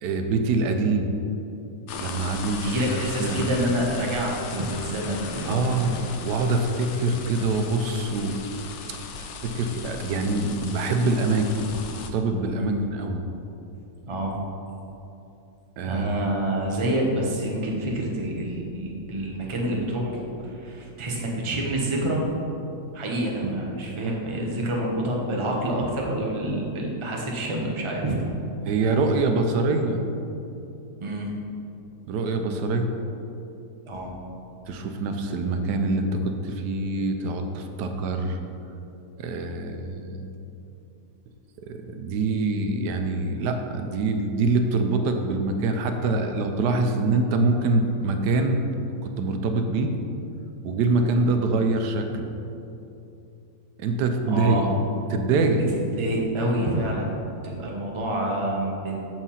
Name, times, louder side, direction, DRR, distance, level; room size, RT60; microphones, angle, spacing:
voice 1, 0.0-1.1 2.0-2.9 3.2-3.5 5.4-6.0 6.2-8.4 8.9-9.0 9.4-13.2 15.8-16.1 28.6-30.0 32.1-32.9 34.7-38.4 39.2-40.3 41.6-48.6 49.2-49.9 50.6-52.3 53.8-54.6 55.1-55.6, right 3 dB, 85° right, 5 dB, 1.2 m, -24 dB
sound 1, 1.9-12.1, left 5 dB, 65° left, 0.7 m, -38 dB
voice 2, 2.6-5.9 12.5-12.8 14.1-14.3 15.9-22.2 22.9-28.2 31.0-31.3 33.9-34.1 54.3-54.7 55.7-58.9, right 1 dB, 25° right, -1 dB, 0.7 m, -27 dB
6.6 x 4.6 x 5.6 m, 2.8 s
omnidirectional pair, 1.7 m